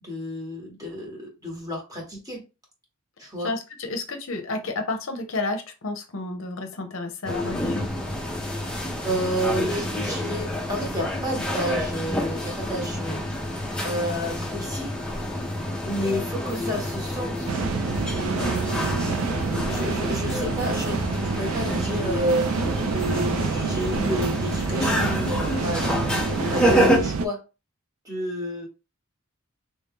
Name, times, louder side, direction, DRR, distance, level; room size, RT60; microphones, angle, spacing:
voice 1, 0.0-2.4 3.2-3.5 9.0-13.2 13.8-14.9 15.9-17.5 18.1-19.1 19.7-25.8 26.2-27.4 28.0-28.7, equal, 15° right, -1 dB, 1.1 m, -30 dB
voice 2, 3.4-7.9, left 3 dB, 60° left, 5 dB, 0.7 m, -31 dB
sound 1, 7.2-27.0, equal, 5° left, 0.6 m, -28 dB
sound 2, 17.5-27.3, right 5 dB, 70° right, 0.4 m, -28 dB
3.3 x 2.6 x 3.6 m, 0.29 s
head